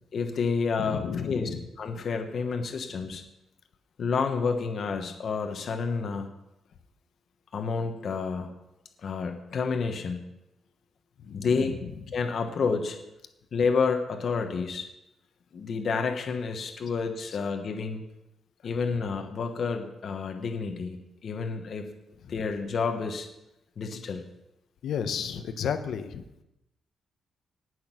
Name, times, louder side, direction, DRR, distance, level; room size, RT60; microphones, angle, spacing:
voice 1, 0.1-1.5 1.8-3.2 4.0-6.3 7.5-8.5 9.0-10.2 11.3-11.7 12.1-13.0 13.5-14.9 15.5-18.0 18.6-21.9 22.3-23.3 23.8-24.2, left 5 dB, 45° left, 5 dB, 1.2 m, -29 dB
voice 2, 0.8-1.6 11.2-11.9 24.8-26.4, left 7 dB, 60° left, 9 dB, 1.1 m, -33 dB
18.0 x 6.3 x 6.2 m, 0.90 s
wide cardioid pair, 175°, 0 cm